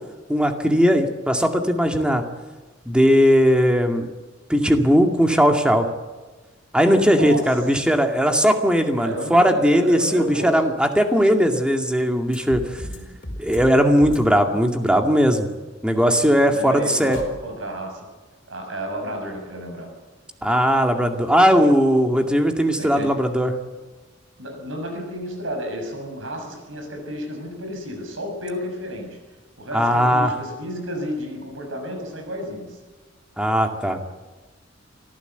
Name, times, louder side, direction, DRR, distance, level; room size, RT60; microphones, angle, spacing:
voice 1, 0.3-2.2 2.9-4.1 4.5-5.9 6.7-12.6 13.4-15.5 15.8-17.2 20.4-23.5 29.7-30.3 33.4-34.1, equal, 5° right, 4 dB, 2.2 m, -18 dB
voice 2, 7.2-7.5 9.0-10.6 12.8-13.2 16.5-18.0 18.5-19.9 22.8-23.2 24.4-29.2 29.6-32.8, equal, 90° right, 3 dB, 6.8 m, -32 dB
sound 1, 12.3-13.0 13.2-13.7 14.0-14.2 17.1-17.3, left 1 dB, 50° left, 4.8 m, -33 dB
25.0 x 15.0 x 8.1 m, 1.3 s
head